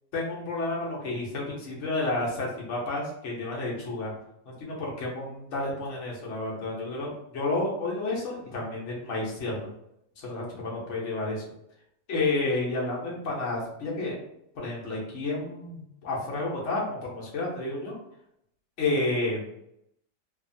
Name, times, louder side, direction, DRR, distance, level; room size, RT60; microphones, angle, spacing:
voice 1, 0.1-4.1 4.4-9.7 10.2-11.4 12.1-14.2 14.5-18.0 18.8-19.5, left 2 dB, 55° left, -3 dB, 0.9 m, -31 dB
2.8 x 2.4 x 2.6 m, 0.76 s
omnidirectional pair, 1.8 m